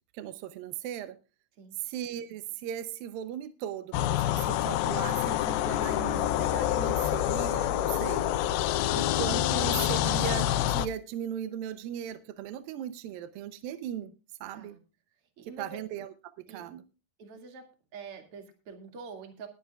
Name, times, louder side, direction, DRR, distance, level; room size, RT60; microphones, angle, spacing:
voice 1, 0.1-1.2 1.8-8.3 9.0-14.1 14.4-14.8 15.4-16.8, right 10 dB, 75° right, 11 dB, 2.4 m, -38 dB
sound 1, 3.9-10.9, left 12 dB, 80° left, 2.5 m, -27 dB
voice 2, 8.8-9.1 14.5-14.8 15.4-15.8 16.5-16.6 17.2-19.5, right 4 dB, 40° right, 5 dB, 2.7 m, -46 dB
20.0 x 11.0 x 2.4 m, 0.30 s
omnidirectional pair, 4.5 m